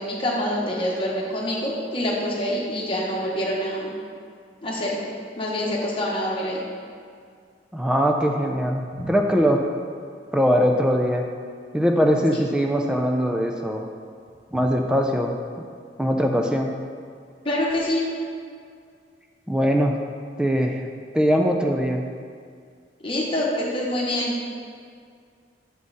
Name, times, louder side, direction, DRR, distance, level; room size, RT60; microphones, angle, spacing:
voice 1, 0.0-3.9 4.6-5.0 5.4-6.6 9.0-9.1 17.4-18.0 23.0-24.3, left 1 dB, 30° left, -4 dB, 1.2 m, -26 dB
voice 2, 7.7-9.6 10.3-11.2 11.7-13.9 14.5-15.4 16.0-16.7 19.5-20.0 20.4-20.8 21.1-22.0, equal, 5° right, 2 dB, 0.4 m, -21 dB
6.2 x 5.4 x 4.1 m, 2.2 s
head